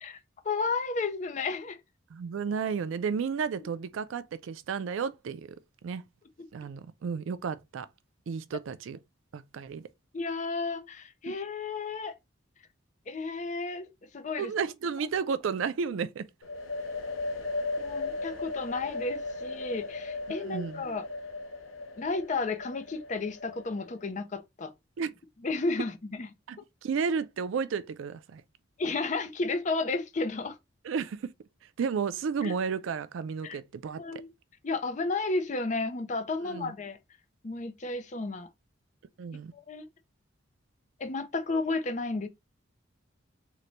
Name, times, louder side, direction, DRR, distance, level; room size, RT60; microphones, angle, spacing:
voice 1, 0.0-1.8 10.1-12.2 13.1-14.5 17.8-21.1 22.0-24.7 25.4-26.3 28.8-30.6 32.4-32.5 33.4-33.6 34.0-34.3 34.6-37.0 37.4-38.5 39.5-39.9 41.0-42.3, left 3 dB, 35° left, 0.5 m, -32 dB
voice 2, 2.1-5.6 5.8-6.0 6.5-7.9 8.3-9.0 9.3-9.8 14.4-16.3 20.3-20.8 25.0-25.1 26.5-28.4 30.8-31.3 31.8-34.0 36.4-36.7 39.2-39.5, right 6 dB, 75° right, 0.4 m, -32 dB
sound 1, 16.4-24.1, left 3 dB, 85° left, 0.8 m, -37 dB
3.8 x 2.2 x 3.0 m
head